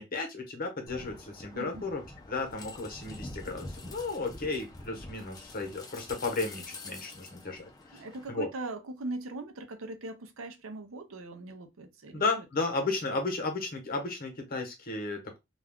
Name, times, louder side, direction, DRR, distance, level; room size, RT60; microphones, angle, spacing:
voice 1, 0.0-2.0 2.3-8.0 8.3-8.5 12.1-15.4, left 3 dB, 45° left, 0.9 m, -34 dB
sound 1, 0.9-8.3, left 2 dB, 20° left, 0.5 m, -46 dB
voice 2, 1.5-1.9 7.9-12.4, right 2 dB, 80° right, 0.6 m, -40 dB
2.4 x 2.2 x 3.5 m
head